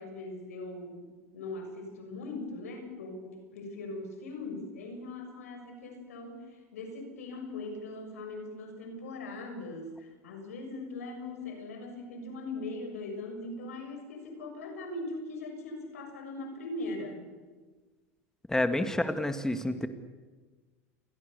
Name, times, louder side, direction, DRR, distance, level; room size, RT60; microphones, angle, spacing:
voice 1, 0.0-17.3, left 2 dB, 85° left, 5 dB, 6.7 m, -40 dB
voice 2, 18.5-19.9, left 1 dB, 5° left, 8 dB, 2.0 m, -29 dB
29.0 x 22.0 x 6.9 m, 1.4 s
hypercardioid pair, 90°, 8 cm